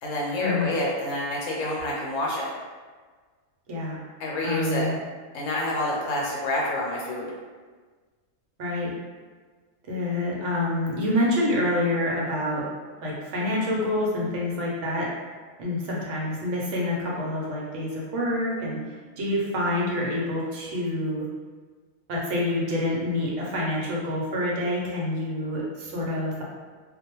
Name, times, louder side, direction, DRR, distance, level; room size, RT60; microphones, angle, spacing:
voice 1, 0.0-2.5 4.2-4.9 5.3-7.3, left 1 dB, 75° left, -3 dB, 1.0 m, -28 dB
voice 2, 3.7-4.0 4.4-5.0 8.6-8.9 9.9-12.7 13.0-15.1 15.6-18.8 19.2-21.3 22.1-26.4, left 1 dB, 70° right, -4 dB, 0.9 m, -27 dB
2.3 x 2.1 x 2.9 m, 1.4 s
omnidirectional pair, 1.4 m